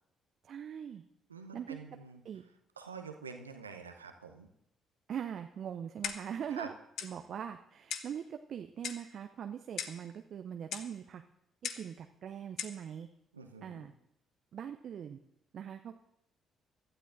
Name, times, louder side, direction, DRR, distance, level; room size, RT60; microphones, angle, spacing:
voice 1, 0.4-1.0 1.5-1.8 2.2-2.4 5.1-6.7 7.0-11.2 11.6-13.1 13.6-13.9 14.5-15.2 15.5-15.9, right 8 dB, 55° right, 7 dB, 0.5 m, -41 dB
voice 2, 1.3-2.2 2.8-4.5 6.5-6.7 13.3-13.9, right 5 dB, 85° right, 6 dB, 0.7 m, -47 dB
Clock, 6.0-6.4 7.0-7.2 7.9-8.2 8.8-9.1 9.8-10.0 10.7-10.9 11.6-11.9 12.6-12.8, left 8 dB, 60° left, 0.8 m, -39 dB
24.0 x 12.0 x 2.6 m, 0.80 s
figure-of-eight pair, 45°, 0 cm